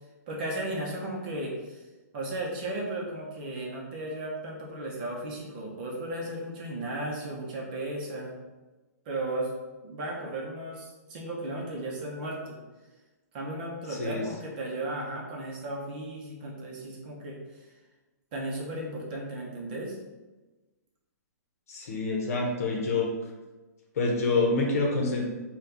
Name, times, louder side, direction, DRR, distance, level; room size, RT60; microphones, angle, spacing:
voice 1, 0.3-1.8 2.1-8.3 9.0-9.5 9.8-12.6 13.3-17.6 18.3-20.0, right 1 dB, 30° right, -2 dB, 0.8 m, -35 dB
voice 2, 21.7-23.1 24.0-25.3, left 3 dB, 55° left, 0 dB, 0.9 m, -27 dB
4.0 x 2.3 x 3.7 m, 1.2 s
hypercardioid pair, 170°, 9 cm